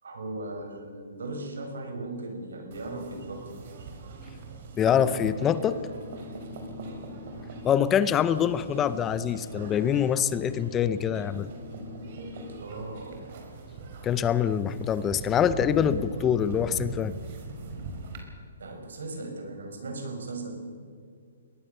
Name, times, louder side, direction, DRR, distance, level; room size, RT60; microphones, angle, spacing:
voice 1, 0.0-3.4 3.8-3.9 6.8-7.0 12.4-13.2 18.6-20.6, right 2 dB, 85° right, 4 dB, 6.0 m, -38 dB
sound 1, 2.7-18.2, right 2 dB, 45° right, 4.5 m, -40 dB
voice 2, 4.8-5.8 7.6-11.5 14.0-17.1, left 9 dB, 15° left, 15 dB, 0.6 m, -25 dB
22.5 x 19.0 x 6.9 m, 2.2 s
hypercardioid pair, 155°, 0 cm